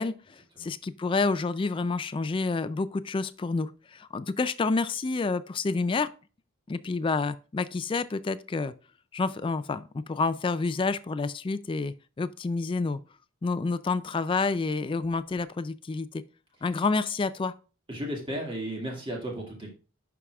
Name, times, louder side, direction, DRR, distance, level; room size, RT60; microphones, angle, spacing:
voice 1, 0.0-6.1 6.7-8.7 9.1-13.0 13.4-16.2 16.6-17.5, left 3 dB, 25° left, 0.3 m, -29 dB
voice 2, 17.9-19.7, right 1 dB, 25° right, 2.0 m, -34 dB
11.0 x 4.8 x 2.3 m
head